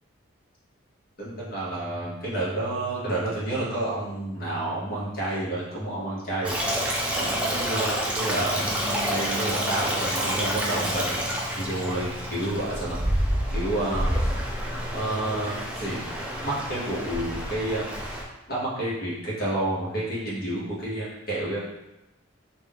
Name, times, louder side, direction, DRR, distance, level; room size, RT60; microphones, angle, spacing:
voice 1, 1.2-6.5 7.1-14.2 14.9-16.0 16.3-17.9 18.5-21.6, right 1 dB, 45° left, -7 dB, 1.2 m, -30 dB
Stream, 6.4-18.2, equal, 5° right, 0.4 m, -28 dB
3.6 x 2.6 x 3.5 m, 0.92 s
head